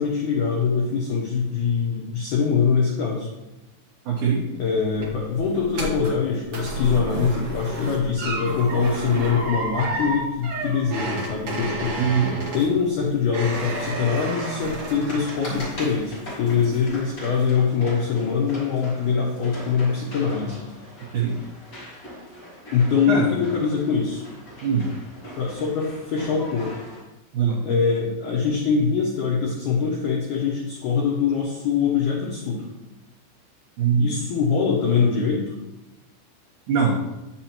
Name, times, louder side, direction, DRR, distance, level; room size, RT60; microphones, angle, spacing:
voice 1, 0.0-3.3 4.5-12.0 12.5-20.6 22.7-24.2 25.4-26.7 27.6-32.7 34.0-35.5, left 5 dB, 85° left, -3 dB, 1.8 m, -23 dB
voice 2, 4.0-4.4 12.0-12.3 21.1-21.4 23.1-23.3 24.6-24.9 27.3-27.6 33.8-34.1 36.7-37.0, right 6 dB, 90° right, -4 dB, 1.8 m, -21 dB
sound 1, 4.6-16.1 16.5-17.0 17.4-17.5, right 1 dB, 60° right, 1.6 m, -31 dB
sound 2, 13.9-27.0, equal, 35° left, 1.6 m, -41 dB
8.4 x 6.1 x 2.9 m, 1.0 s
omnidirectional pair, 4.9 m